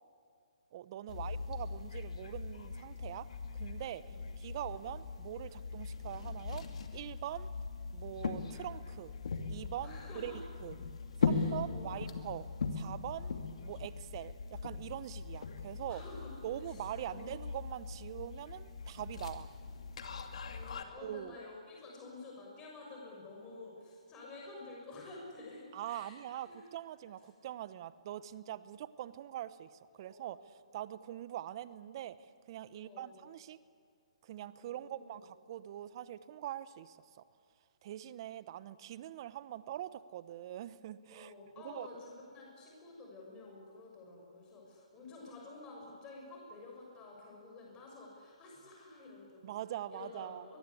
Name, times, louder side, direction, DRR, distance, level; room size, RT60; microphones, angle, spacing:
voice 1, 0.7-3.3 3.5-4.0 4.4-6.6 6.9-7.5 7.9-9.1 9.5-10.3 10.6-10.8 11.2-12.4 12.7-13.3 13.6-16.0 16.4-19.5 21.0-21.4 25.7-33.6 34.2-37.0 37.8-41.9 49.4-50.5, right 12 dB, 40° right, 16 dB, 0.9 m, -43 dB
sound 1, 1.1-20.8, left 5 dB, 65° left, 2.6 m, -40 dB
voice 2, 9.8-10.4 11.2-12.1 15.9-17.3 20.5-26.7 29.9-30.4 32.7-33.1 34.6-35.2 41.1-49.5 49.9-50.6, left 3 dB, 20° left, -2 dB, 6.6 m, -51 dB
23.0 x 22.5 x 8.4 m, 2.1 s
hypercardioid pair, 140°, 4 cm